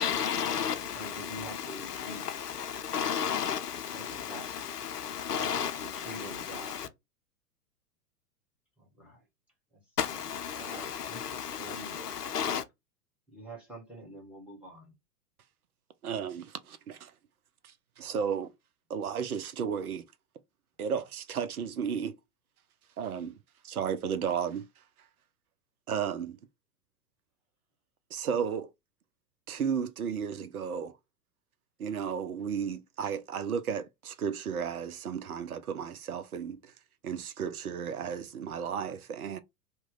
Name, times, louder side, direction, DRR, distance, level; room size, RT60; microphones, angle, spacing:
voice 1, 0.0-6.9 10.0-12.6, left 8 dB, 75° left, 0.7 m, -33 dB
voice 2, 0.8-2.3 3.2-3.6 3.9-4.5 5.3-5.5 5.8-6.8 8.8-9.2 9.7-10.2 10.5-12.3 13.3-14.9, right 1 dB, 5° right, 1.3 m, -46 dB
voice 3, 16.0-17.1 17.6-18.5 18.9-20.0 20.8-22.2 23.0-23.3 23.6-24.6 25.9-26.4 28.1-28.7 29.5-30.9 31.8-36.7 37.0-39.4, right 7 dB, 65° right, 0.6 m, -33 dB
2.9 x 2.2 x 3.6 m
figure-of-eight pair, 100°, 48 cm